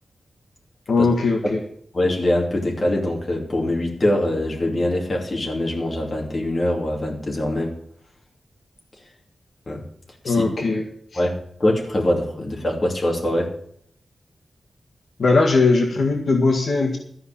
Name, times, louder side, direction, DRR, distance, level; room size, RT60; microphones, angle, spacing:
voice 1, 0.9-1.6 10.2-10.8 11.1-11.2 15.2-17.0, left 3 dB, 65° left, 1 dB, 1.7 m, -19 dB
voice 2, 1.9-7.7 9.7-9.8 10.2-10.4 11.1-13.5, left 1 dB, 30° left, -1 dB, 2.7 m, -23 dB
13.5 x 5.6 x 8.8 m, 0.66 s
wide cardioid pair, 175°, 0 cm